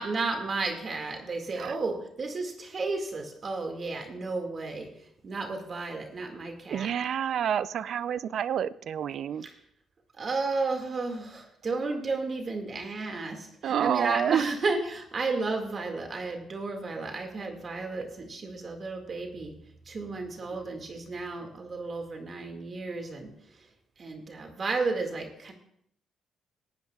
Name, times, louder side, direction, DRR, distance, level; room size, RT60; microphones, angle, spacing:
voice 1, 0.0-6.9 9.4-9.6 10.2-19.5 19.9-23.7 24.0-25.5, right 3 dB, 45° right, 3 dB, 2.0 m, -33 dB
voice 2, 6.7-9.4 13.6-14.4, right 9 dB, 65° right, 16 dB, 0.4 m, -28 dB
17.5 x 13.0 x 2.4 m, 0.70 s
cardioid pair, 90°, 0 cm